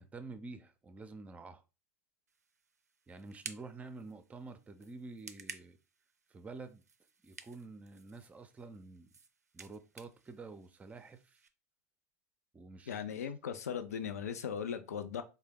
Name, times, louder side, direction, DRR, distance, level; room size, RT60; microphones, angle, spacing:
voice 1, 0.0-1.6 3.1-5.8 6.3-6.8 7.2-9.1 9.5-11.4 12.5-13.0, right 3 dB, 15° right, 0.5 m, -49 dB
sound 1, 2.3-11.5, right 5 dB, 85° right, 0.4 m, -54 dB
voice 2, 12.9-15.2, left 7 dB, 75° left, 0.5 m, -38 dB
3.6 x 2.2 x 3.4 m
figure-of-eight pair, 80°, 8 cm